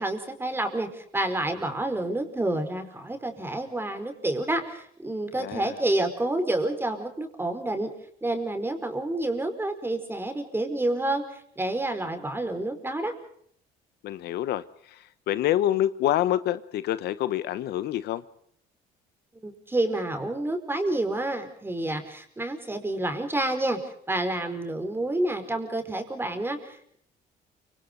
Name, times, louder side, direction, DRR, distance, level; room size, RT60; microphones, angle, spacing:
voice 1, 0.0-7.9 8.2-11.2 11.6-13.1 19.4-23.8 24.1-27.0, right 1 dB, 15° right, 7 dB, 5.0 m, -29 dB
voice 2, 5.4-5.8 14.0-18.2, left 12 dB, 75° left, 14 dB, 1.1 m, -27 dB
29.5 x 26.0 x 3.9 m, 0.65 s
cardioid pair, 110°, 17 cm